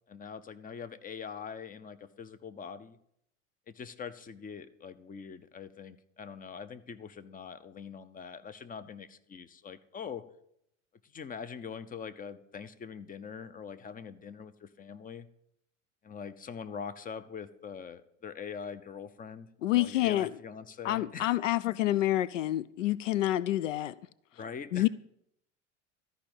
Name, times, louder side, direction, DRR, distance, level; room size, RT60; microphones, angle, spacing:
voice 1, 0.1-3.0 3.7-10.2 11.1-15.3 16.0-21.3 24.3-24.9, left 6 dB, 20° left, 0.9 m, -43 dB
voice 2, 19.6-20.3 20.8-23.9 24.7-24.9, left 15 dB, 80° left, 0.5 m, -28 dB
13.5 x 5.2 x 9.0 m
hypercardioid pair, 80°, 37 cm